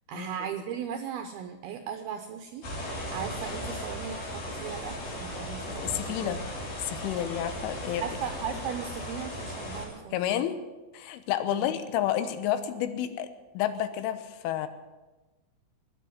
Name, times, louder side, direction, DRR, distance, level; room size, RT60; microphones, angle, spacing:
voice 1, 0.1-6.4 8.0-10.5 11.5-11.8, right 8 dB, 80° right, 6 dB, 2.3 m, -37 dB
sound 1, 2.6-9.9, left 1 dB, 50° left, 5.6 m, -37 dB
voice 2, 5.7-6.4 6.9-8.0 10.1-10.6 10.9-13.3 13.6-14.7, left 11 dB, 90° left, 11 dB, 3.6 m, -30 dB
20.0 x 7.7 x 9.3 m, 1.2 s
omnidirectional pair, 5.5 m